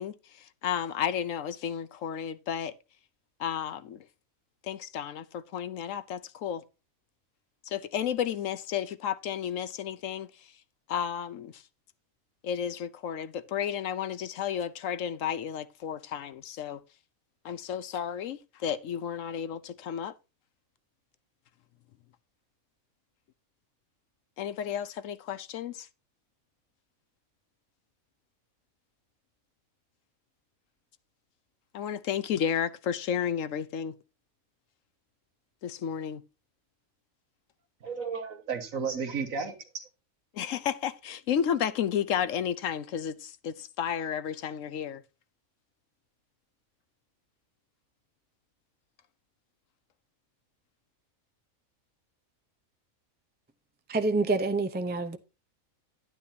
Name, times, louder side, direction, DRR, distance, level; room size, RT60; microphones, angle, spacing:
voice 1, 0.0-2.7 3.4-4.1 4.6-6.6 7.6-10.5 10.9-11.6 12.4-16.8 17.4-20.1 24.4-25.9 31.7-33.9 35.6-36.2 40.3-45.0, left 9 dB, 70° left, 1.0 m, -32 dB
voice 2, 37.8-39.8, right 5 dB, 70° right, 1.9 m, -33 dB
voice 3, 53.9-55.2, right 3 dB, 15° right, 0.3 m, -27 dB
11.0 x 9.5 x 2.7 m
omnidirectional pair, 1.5 m